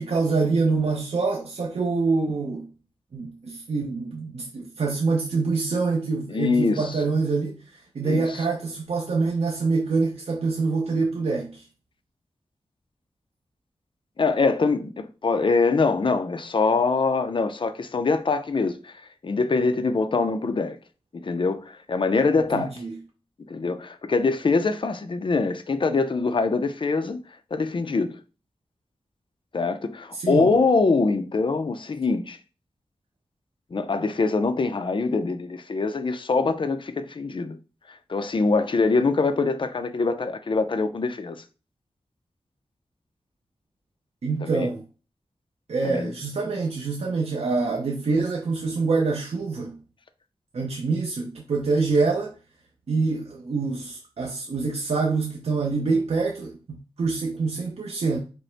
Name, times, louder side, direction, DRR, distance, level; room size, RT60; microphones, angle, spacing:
voice 1, 0.0-2.7 3.1-11.6 22.5-23.0 30.1-30.5 44.2-44.9 45.7-49.8 50.5-52.3 52.9-58.2, right 4 dB, 80° right, 0.7 m, -25 dB
voice 2, 6.3-6.9 8.0-8.2 14.2-18.9 19.2-20.8 21.1-22.7 23.5-27.2 27.5-28.2 29.5-32.4 33.7-37.6 37.9-41.4 44.4-44.7 45.8-46.1, left 4 dB, 50° left, 0.6 m, -24 dB
5.1 x 2.1 x 4.5 m
wide cardioid pair, 90°, 10 cm